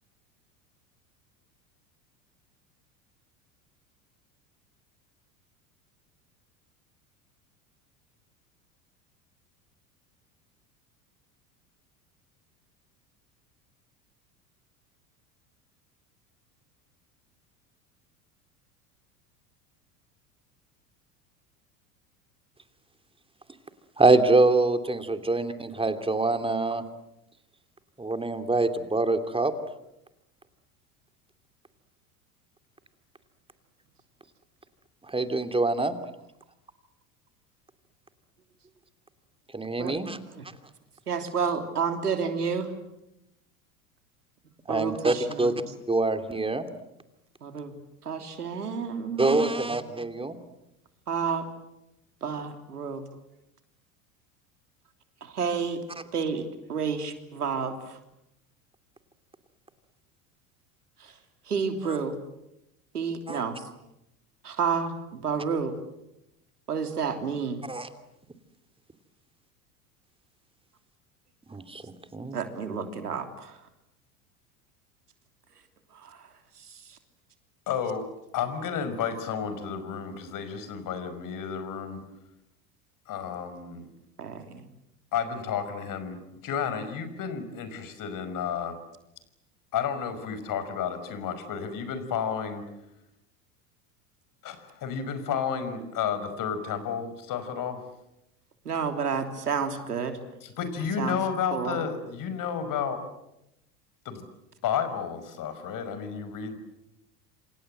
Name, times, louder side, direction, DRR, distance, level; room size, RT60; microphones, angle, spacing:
voice 1, 24.0-26.8 28.0-29.5 35.1-35.9 39.5-40.2 44.7-45.6 45.9-46.7 49.2-50.4 61.8-62.0 63.3-63.4 67.7-67.9 71.5-71.8 72.1-72.4, right 2 dB, 10° right, 8 dB, 2.9 m, -25 dB
voice 2, 41.1-42.7 44.7-45.5 47.4-47.7 48.0-49.5 51.1-51.5 52.2-53.0 55.2-55.8 56.1-57.7 61.5-62.1 62.9-63.6 64.4-65.8 66.7-67.6 72.3-73.5 76.0-76.2 84.2-84.6 98.6-100.2 101.0-101.2 101.5-101.8, right 6 dB, 90° right, 7 dB, 3.3 m, -30 dB
voice 3, 77.7-78.1 78.3-82.0 83.1-83.9 85.1-88.8 89.7-92.6 94.4-97.8 100.4-103.0 104.1-104.3 104.6-106.6, left 7 dB, 45° left, 11 dB, 5.6 m, -31 dB
27.5 x 27.5 x 7.8 m, 0.87 s
hypercardioid pair, 80°, 45 cm